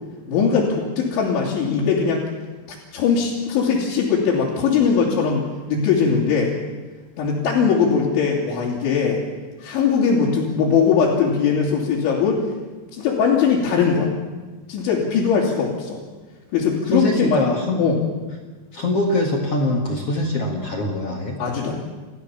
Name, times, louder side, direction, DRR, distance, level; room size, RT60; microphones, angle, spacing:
voice 1, 0.3-2.3 2.9-6.5 7.2-9.2 9.6-12.4 12.9-14.1 14.7-16.0 16.5-17.4 17.8-18.0 21.4-21.8, left 6 dB, 75° left, -5 dB, 5.2 m, -20 dB
voice 2, 16.9-17.8 18.7-21.4, left 2 dB, 50° left, 0 dB, 1.9 m, -23 dB
29.5 x 14.5 x 7.1 m, 1.3 s
omnidirectional pair, 5.4 m